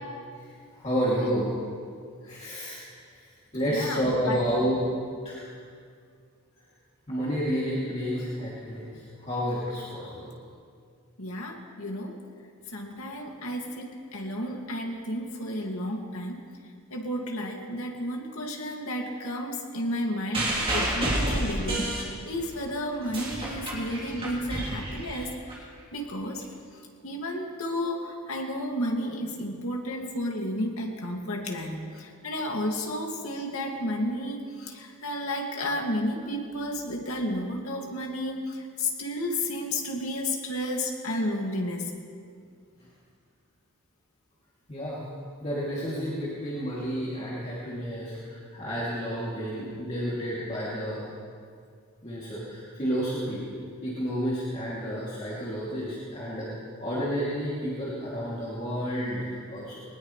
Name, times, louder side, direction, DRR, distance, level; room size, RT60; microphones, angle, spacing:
voice 1, 0.3-1.5 2.3-2.8 3.1-3.3 3.5-4.8 5.2-5.5 7.1-10.3 44.7-45.0 45.4-51.1 52.0-53.4 53.8-56.5 56.8-59.8, equal, 30° left, -8 dB, 2.8 m, -30 dB
voice 2, 3.7-4.4 11.2-12.2 12.7-16.4 16.9-21.9 22.2-25.3 25.9-26.4 27.0-41.9, left 1 dB, 80° left, 0 dB, 2.3 m, -32 dB
sound 1, 20.3-22.6 22.9-25.5 26.4-26.5, right 1 dB, 25° right, 3.3 m, -30 dB
20.5 x 19.5 x 3.3 m, 2.2 s
head